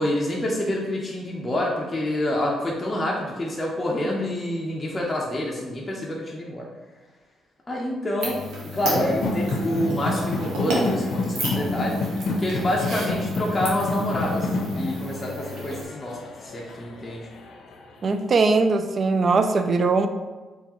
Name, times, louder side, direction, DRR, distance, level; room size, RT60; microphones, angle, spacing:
voice 1, 0.0-6.7 7.7-14.5 14.8-17.3, left 1 dB, 20° left, -3 dB, 0.7 m, -27 dB
sound 1, 8.2-15.8, equal, 75° right, 1.3 m, -32 dB
sound 2, 8.8-17.7, left 2 dB, 70° left, 0.5 m, -29 dB
voice 2, 18.0-20.1, right 3 dB, 45° right, 8 dB, 0.3 m, -20 dB
4.2 x 3.3 x 3.0 m, 1.3 s
cardioid pair, 90°, 0 cm